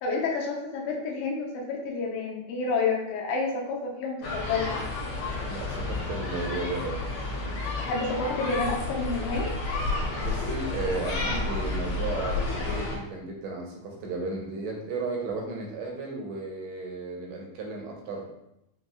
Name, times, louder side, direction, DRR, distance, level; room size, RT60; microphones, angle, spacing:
voice 1, 0.0-4.8 7.8-9.5, left 4 dB, 85° left, -1 dB, 2.2 m, -29 dB
sound 1, 4.2-13.0, left 2 dB, 65° left, 2.2 m, -31 dB
voice 2, 5.5-7.1 10.2-18.3, right 3 dB, 80° right, 0 dB, 1.6 m, -34 dB
5.5 x 2.9 x 2.3 m, 0.83 s
omnidirectional pair, 3.5 m